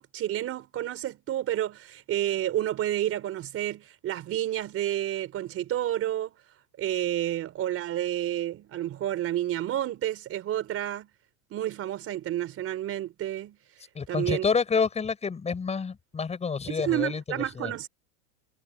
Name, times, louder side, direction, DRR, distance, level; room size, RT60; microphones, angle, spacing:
voice 1, 0.0-6.3 6.8-11.1 11.5-13.6 14.1-14.4 16.7-17.9, right 12 dB, 30° right, 4.3 m, -30 dB
voice 2, 13.9-17.7, left 5 dB, 15° left, 6.5 m, -28 dB
supercardioid pair, 150°, 45 cm